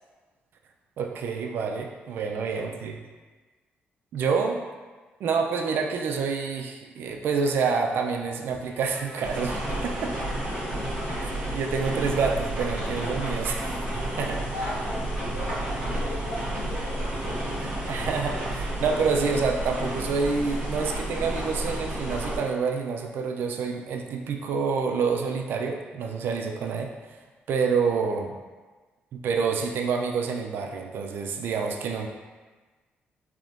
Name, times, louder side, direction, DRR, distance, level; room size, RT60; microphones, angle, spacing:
voice 1, 1.0-2.9 4.1-4.6 5.2-10.2 11.2-13.7 14.2-14.4 17.6-26.9 27.5-28.4 29.1-32.1, right 5 dB, 70° right, 3 dB, 0.3 m, -28 dB
sound 1, 8.0-14.4, left 1 dB, 65° left, 0.5 m, -45 dB
sound 2, 9.2-22.4, right 1 dB, 25° right, 1.3 m, -31 dB
sound 3, 11.6-19.5, right 5 dB, 40° right, 0.6 m, -47 dB
voice 2, 14.5-17.6, left 1 dB, 90° left, -11 dB, 1.0 m, -38 dB
3.5 x 2.7 x 2.5 m, 1.3 s
cardioid pair, 140°, 4 cm